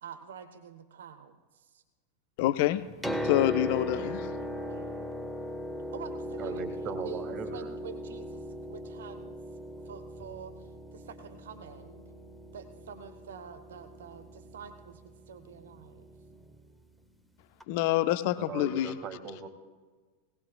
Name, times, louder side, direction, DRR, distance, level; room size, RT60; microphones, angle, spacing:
voice 1, 0.0-1.8 4.4-5.1 5.9-9.4 9.8-12.0 12.5-16.1, right 7 dB, 60° right, 10 dB, 1.0 m, -47 dB
voice 2, 2.4-2.8 3.2-4.3 17.7-19.0, left 14 dB, 50° left, 13 dB, 0.7 m, -27 dB
Piano, 2.8-16.5 17.6-17.7, left 1 dB, 5° right, 1.4 m, -39 dB
voice 3, 6.4-7.6 18.4-19.5, right 5 dB, 35° right, 8 dB, 1.9 m, -39 dB
19.0 x 19.0 x 2.3 m, 1.4 s
figure-of-eight pair, 90°, 0 cm